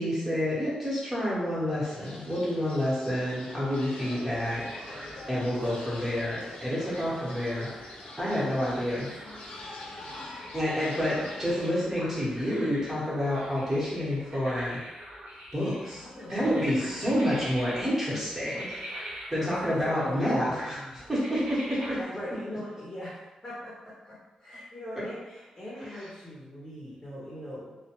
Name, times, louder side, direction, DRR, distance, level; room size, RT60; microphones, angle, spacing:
voice 1, 0.0-7.7 8.2-9.1 10.5-14.8 15.5-19.0 19.3-22.0, equal, 15° right, -9 dB, 1.0 m, -29 dB
sound 1, 1.8-11.7, left 2 dB, 85° left, 0.5 m, -44 dB
sound 2, 4.3-22.0, equal, 70° right, 0.7 m, -44 dB
voice 2, 9.0-10.2 15.9-16.5 16.8-17.2 19.4-21.0 22.0-23.2 23.4-27.8, left 1 dB, 20° left, -8 dB, 0.7 m, -42 dB
2.3 x 2.1 x 2.9 m, 1.1 s
wide cardioid pair, 125°, 2 cm